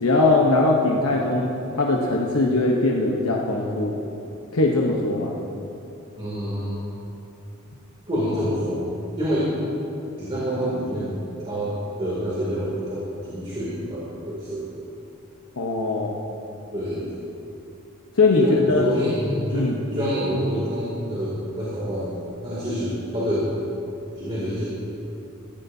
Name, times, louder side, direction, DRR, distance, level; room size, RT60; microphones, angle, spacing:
voice 1, 0.0-1.5 1.8-4.0 4.5-5.3 15.6-16.2 18.2-18.9 19.5-19.8, left 2 dB, 75° left, -1 dB, 1.0 m, -20 dB
voice 2, 6.2-6.7 8.1-8.8 9.2-9.5 10.2-11.1 11.5-14.7 16.7-17.1 18.3-22.1 22.4-23.6 24.2-24.6, equal, 25° right, -9 dB, 2.6 m, -27 dB
16.0 x 15.0 x 2.7 m, 2.9 s
head